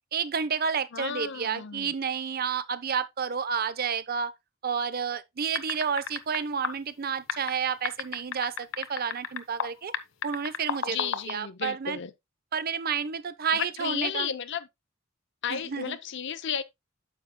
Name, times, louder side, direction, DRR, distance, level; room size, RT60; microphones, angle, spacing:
voice 1, 0.1-4.3 4.6-9.9 10.2-12.0 12.5-14.3 15.5-16.0, right 6 dB, 50° right, 0.6 m, -30 dB
voice 2, 0.9-1.9 10.8-12.1 13.5-14.7 15.4-16.6, left 8 dB, 65° left, 0.6 m, -33 dB
sound 1, 5.5-6.4 6.6-6.7 7.3-9.7 9.9-11.3, left 6 dB, 85° left, 0.9 m, -31 dB
9.4 x 7.3 x 2.2 m
head